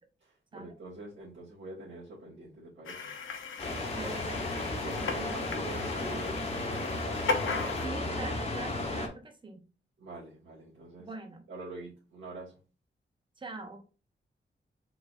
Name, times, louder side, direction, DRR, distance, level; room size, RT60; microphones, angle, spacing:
voice 1, 0.5-3.1 3.9-4.3 4.7-7.3 10.0-11.1 11.5-12.5, right 2 dB, 75° right, -10 dB, 2.3 m, -45 dB
sound 1, 2.9-7.9, left 4 dB, 90° left, 0.8 m, -37 dB
sound 2, 3.6-9.1, left 2 dB, 30° left, 1.1 m, -34 dB
voice 2, 4.0-4.6 5.1-5.4 7.8-9.6 11.0-11.4 13.4-13.8, right 3 dB, 25° right, 5 dB, 0.8 m, -43 dB
4.7 x 3.9 x 2.5 m, 0.35 s
wide cardioid pair, 170°, 20 cm